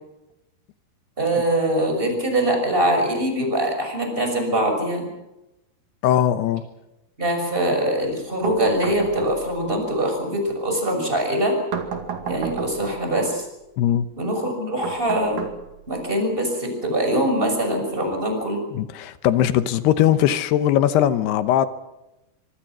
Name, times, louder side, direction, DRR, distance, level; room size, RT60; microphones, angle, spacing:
voice 1, 1.2-5.1 7.2-11.6 12.2-13.4 14.2-15.4 15.9-18.6, right 1 dB, 10° right, 6.2 m, -23 dB
voice 2, 6.0-6.6 13.8-14.1 18.7-21.7, left 11 dB, 80° left, 3.0 m, -19 dB
sound 1, 8.4-9.7 11.7-13.0 14.8-16.0, right 7 dB, 60° right, 3.7 m, -31 dB
25.0 x 24.5 x 6.2 m
omnidirectional pair, 4.7 m